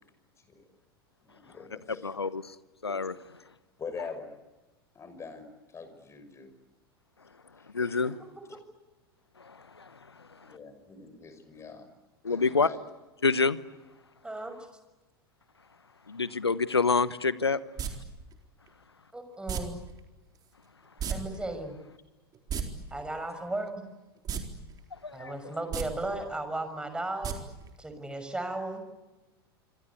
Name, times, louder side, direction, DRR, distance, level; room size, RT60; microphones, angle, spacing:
voice 1, 1.2-2.1 3.8-4.3 4.9-5.4 5.7-6.5 7.6-8.1 10.4-11.9 12.3-12.8 25.4-25.5, left 5 dB, 20° left, 6.0 m, -44 dB
voice 2, 2.0-2.4 2.8-3.2 7.7-8.1 9.4-9.9 12.2-12.7 13.2-13.6 16.1-17.6 25.0-25.3, left 4 dB, 85° left, 1.1 m, -27 dB
voice 3, 8.0-8.6 14.2-14.6 19.1-19.8 21.1-21.8 22.9-23.8 25.1-27.5 27.8-28.8, right 2 dB, 5° right, 6.3 m, -35 dB
sound 1, 17.8-17.9 19.5-19.6 21.0-21.2 21.4-21.5 22.3-22.6 24.2-24.4 24.8-24.9 25.6-25.8 27.2-27.3 27.7-27.8, right 8 dB, 30° right, 4.2 m, -31 dB
26.5 x 26.0 x 8.5 m
figure-of-eight pair, 90°, 13 cm